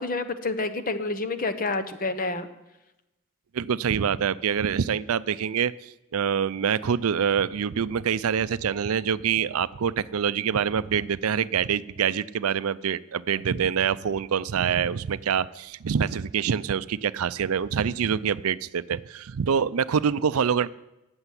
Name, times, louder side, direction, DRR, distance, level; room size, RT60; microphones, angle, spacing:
voice 1, 0.0-2.5 13.5-13.7, left 3 dB, 40° left, 11 dB, 1.0 m, -29 dB
voice 2, 3.5-20.7, right 7 dB, 75° right, 17 dB, 0.5 m, -25 dB
14.0 x 8.0 x 9.7 m, 0.96 s
head